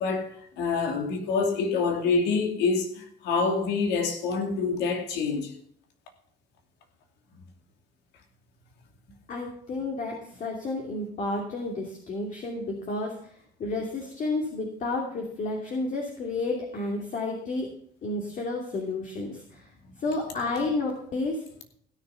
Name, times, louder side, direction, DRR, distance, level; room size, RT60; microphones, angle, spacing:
voice 1, 0.0-5.5, left 4 dB, 90° left, 2.6 m, -26 dB
voice 2, 9.3-17.7 18.0-19.7 20.0-21.4, left 2 dB, 50° left, 2.7 m, -31 dB
16.5 x 6.9 x 5.7 m
cardioid pair, 110°, 17 cm